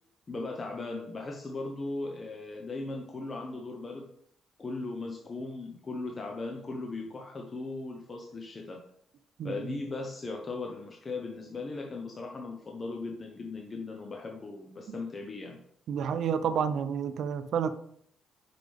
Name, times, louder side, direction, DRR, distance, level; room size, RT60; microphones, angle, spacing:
voice 1, 0.3-4.1 4.6-8.8 9.4-15.6, left 3 dB, 35° left, 2 dB, 1.0 m, -38 dB
voice 2, 15.9-17.7, right 7 dB, 70° right, 12 dB, 0.5 m, -29 dB
6.0 x 5.2 x 3.5 m, 0.67 s
supercardioid pair, 65°, 0 cm